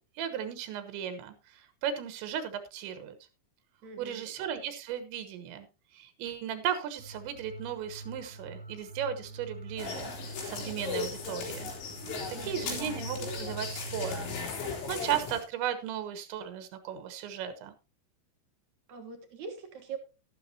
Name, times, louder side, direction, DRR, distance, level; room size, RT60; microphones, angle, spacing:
voice 1, 0.0-3.2 4.0-5.7 5.9-11.7 12.4-14.3 14.9-17.7, right 9 dB, 85° right, 10 dB, 3.5 m, -36 dB
voice 2, 3.8-4.3 12.0-12.8 18.9-20.0, right 5 dB, 65° right, 5 dB, 1.9 m, -43 dB
sound 1, 7.0-14.4, right 2 dB, 10° left, 2.2 m, -44 dB
sound 2, 9.8-15.4, left 5 dB, 85° left, 5.7 m, -37 dB
12.5 x 12.5 x 2.8 m, 0.28 s
omnidirectional pair, 5.1 m